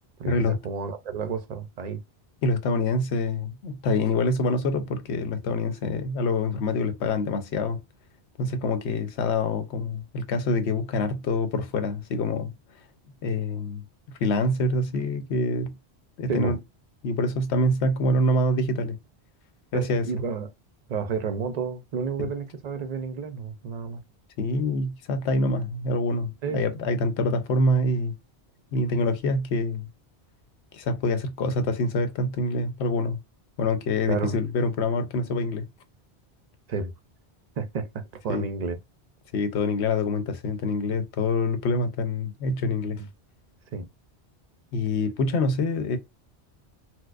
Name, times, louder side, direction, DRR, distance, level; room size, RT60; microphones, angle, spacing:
voice 1, 0.2-2.0 16.3-16.6 19.7-20.5 20.9-24.0 26.4-26.6 34.1-34.4 36.7-36.9 37.6-38.8 43.0-43.1 43.7-43.9, right 5 dB, 55° right, 0.4 m, -31 dB
voice 2, 2.4-7.8 8.4-12.5 13.2-13.8 14.2-15.7 16.2-16.6 17.0-19.0 19.7-20.1 22.2-22.3 24.4-28.1 28.7-29.9 30.7-33.2 33.6-35.7 38.3-38.5 39.3-43.0 44.7-46.0, left 2 dB, 90° left, 0.9 m, -26 dB
4.4 x 2.0 x 2.4 m
omnidirectional pair, 1.1 m